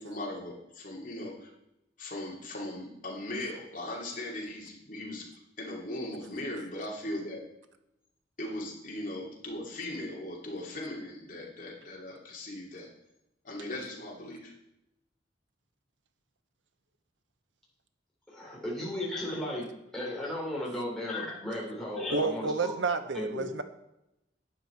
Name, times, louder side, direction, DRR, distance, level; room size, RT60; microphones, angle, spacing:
voice 1, 0.0-1.5 2.0-5.3 5.6-7.4 8.4-12.9 13.4-14.5, left 1 dB, 45° left, -3 dB, 3.0 m, -38 dB
voice 2, 18.3-19.7 19.9-22.7 23.1-23.5, left 1 dB, 5° left, -5 dB, 3.8 m, -35 dB
voice 3, 22.1-23.6, right 4 dB, 85° right, 9 dB, 0.9 m, -30 dB
11.5 x 9.3 x 4.6 m, 0.85 s
head